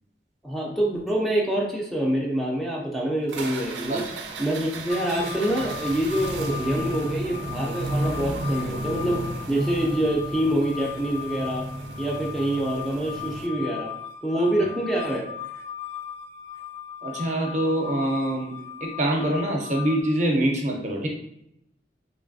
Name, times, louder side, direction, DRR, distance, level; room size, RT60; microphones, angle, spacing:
voice 1, 0.4-4.0 4.4-11.6 12.0-13.9 14.2-15.3, right 1 dB, ahead, -3 dB, 0.3 m, -26 dB
sound 1, 3.3-13.5, right 2 dB, 90° right, 0.4 m, -33 dB
sound 2, 4.9-20.0, left 10 dB, 60° left, 0.6 m, -38 dB
voice 2, 17.0-18.5 18.8-21.1, right 1 dB, 45° right, 1 dB, 0.6 m, -25 dB
3.1 x 2.6 x 2.6 m, 0.78 s
head